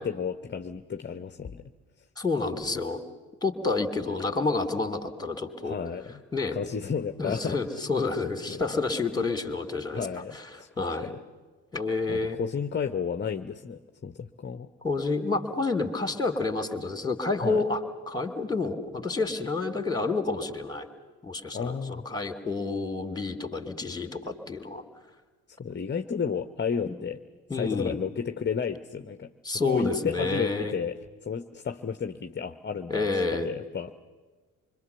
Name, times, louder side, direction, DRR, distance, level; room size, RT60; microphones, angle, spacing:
voice 1, 0.0-1.7 5.6-6.2 6.5-7.6 8.5-8.8 9.9-10.7 11.0-11.2 12.1-14.7 17.4-17.6 21.5-22.0 25.5-27.2 27.5-29.3 29.6-31.0 31.2-33.9, left 6 dB, 25° left, 9 dB, 1.0 m, -32 dB
voice 2, 2.2-3.0 3.4-5.8 6.3-6.6 7.2-10.1 10.8-11.1 11.7-12.4 14.8-20.9 21.2-24.8 26.9-27.0 27.5-28.0 29.4-30.8 32.9-33.5, left 3 dB, 10° left, 6 dB, 3.1 m, -29 dB
25.5 x 25.0 x 7.0 m, 1.4 s
figure-of-eight pair, 40°, 43 cm